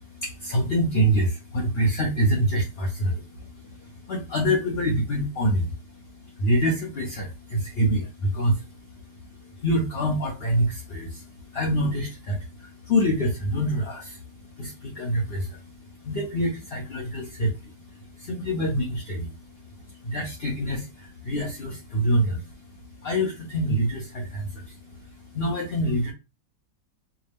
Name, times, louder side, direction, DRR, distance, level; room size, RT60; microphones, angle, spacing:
voice 1, 0.0-26.1, equal, 45° left, 0 dB, 0.9 m, -27 dB
4.8 x 2.3 x 3.4 m, 0.27 s
omnidirectional pair, 1.9 m